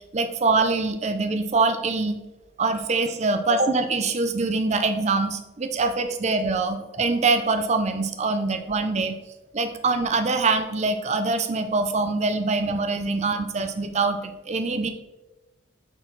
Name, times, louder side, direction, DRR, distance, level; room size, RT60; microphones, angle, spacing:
voice 1, 0.1-2.2 2.6-9.2 9.5-14.9, right 3 dB, 30° right, 8 dB, 0.4 m, -24 dB
5.9 x 4.5 x 3.9 m, 1.1 s
head